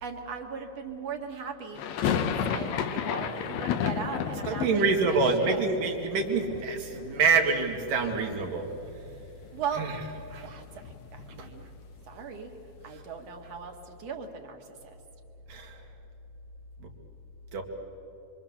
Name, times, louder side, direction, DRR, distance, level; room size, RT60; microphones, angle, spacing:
voice 1, 0.0-5.6 9.5-9.9 10.4-11.7 12.1-12.6 12.8-15.0, right 6 dB, 55° right, 4 dB, 2.7 m, -38 dB
sound 1, 1.7-7.7 8.0-8.8 9.1-9.2 9.4-11.6, left 8 dB, 65° left, 2.1 m, -33 dB
voice 2, 4.5-8.7 9.8-9.9 10.3-10.5 11.4-11.5 15.5-15.7 17.5-17.6, right 4 dB, 80° right, 2 dB, 3.8 m, -26 dB
26.0 x 25.5 x 7.3 m, 3.0 s
omnidirectional pair, 3.7 m